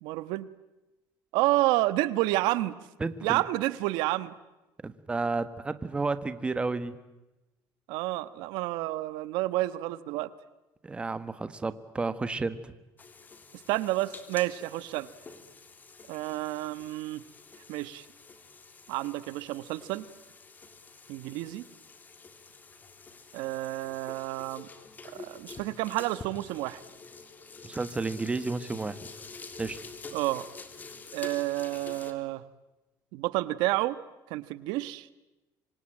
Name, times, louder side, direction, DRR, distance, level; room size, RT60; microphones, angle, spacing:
voice 1, 0.0-0.5 1.3-2.8 3.2-4.3 7.9-10.3 13.7-15.1 16.1-17.2 17.7-18.0 18.9-20.0 21.1-21.7 23.3-24.7 25.1-26.8 30.1-30.5 31.1-32.4 33.1-34.0 34.3-35.1, right 17 dB, 85° right, 15 dB, 1.3 m, -30 dB
voice 2, 3.0-3.4 4.8-7.0 10.8-12.7 27.6-29.0 29.6-29.8, right 3 dB, 15° right, 12 dB, 1.4 m, -31 dB
sound 1, 13.0-32.1, left 4 dB, 25° left, 2.9 m, -48 dB
26.0 x 25.5 x 8.9 m, 1.0 s
cardioid pair, 150°, 7 cm